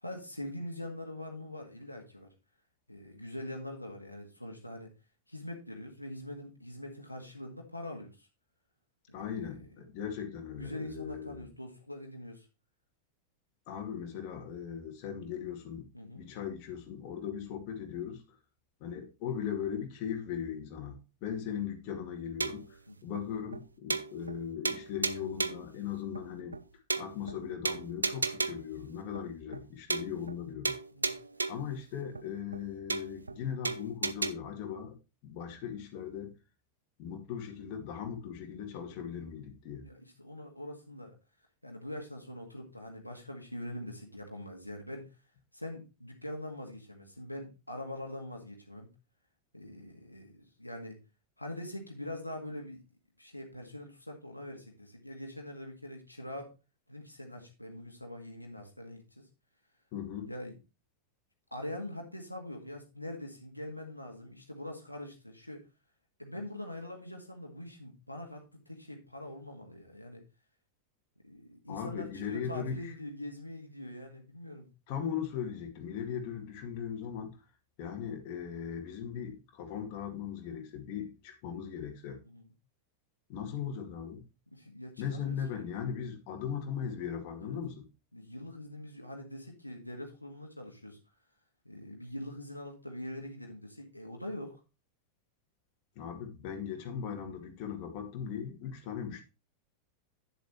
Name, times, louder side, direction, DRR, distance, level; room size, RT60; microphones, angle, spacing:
voice 1, 0.0-2.3 2.9-4.9 5.3-8.3 9.1-9.7 10.5-12.5 15.9-16.2 20.2-20.4 22.9-23.1 30.9-31.2 39.8-41.2 41.6-45.1 45.5-48.9 49.5-51.0 51.4-52.8 53.2-56.5 56.9-59.3 60.3-60.6 61.5-65.6 66.2-70.2 71.2-74.7 77.8-78.1 82.2-82.5 84.5-85.6 87.4-87.6 88.1-91.0 91.6-94.5, left 1 dB, 85° left, 1.9 m, -43 dB
voice 2, 9.1-11.5 13.7-15.9 16.1-18.4 18.8-26.6 27.0-30.8 31.5-34.9 35.2-36.4 37.0-39.8 59.9-60.3 71.7-72.9 74.9-77.4 77.8-82.2 83.3-84.2 85.0-87.9 96.0-99.2, left 8 dB, 45° left, 2.2 m, -38 dB
sound 1, 22.4-22.7 23.2-23.3 23.5-23.6 23.9-24.4 24.7-25.7 26.2-26.3 26.5-26.6 26.9-27.4 27.7-28.7 29.2-29.3 29.5-29.6 29.9-30.4 30.7-31.7 32.2-32.3 32.5-32.6 32.9-33.4 33.7-34.3, right 3 dB, 80° right, 0.6 m, -34 dB
10.5 x 7.3 x 3.1 m
figure-of-eight pair, 90°, 0 cm